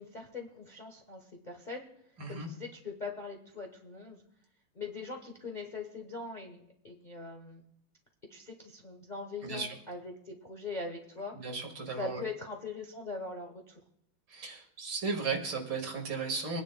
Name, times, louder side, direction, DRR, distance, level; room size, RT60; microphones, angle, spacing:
voice 1, 0.0-1.9 2.3-4.2 4.7-7.6 8.3-11.5 12.0-13.8, left 3 dB, 35° left, 2 dB, 0.8 m, -41 dB
voice 2, 9.4-9.8 11.3-12.2 14.3-16.6, right 4 dB, 60° right, 3 dB, 2.5 m, -35 dB
26.0 x 10.0 x 2.2 m, 0.75 s
omnidirectional pair, 2.4 m